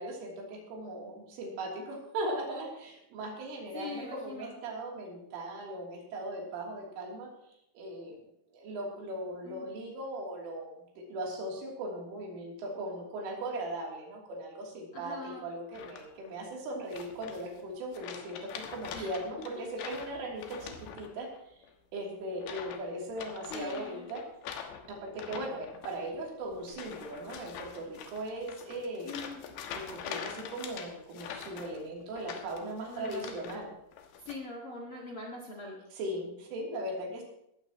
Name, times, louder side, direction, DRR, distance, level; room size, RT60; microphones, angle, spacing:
voice 1, 0.0-7.3 7.8-8.2 8.5-21.6 21.9-29.1 29.7-33.7 35.9-37.2, right 1 dB, 90° right, -2 dB, 5.8 m, -39 dB
voice 2, 3.7-4.6 9.4-9.7 14.9-15.5 18.9-19.1 19.4-19.5 19.8-19.9 23.5-24.1 29.0-29.4 32.9-33.4 34.3-35.8, left 3 dB, 50° left, -1 dB, 1.8 m, -42 dB
sound 1, 15.7-16.3 16.9-17.6 17.9-21.4 21.6-22.0 22.4-22.8 23.1-33.6 33.9-34.4, left 7 dB, 70° left, 3.3 m, -44 dB
18.5 x 14.5 x 3.1 m, 0.78 s
omnidirectional pair, 5.5 m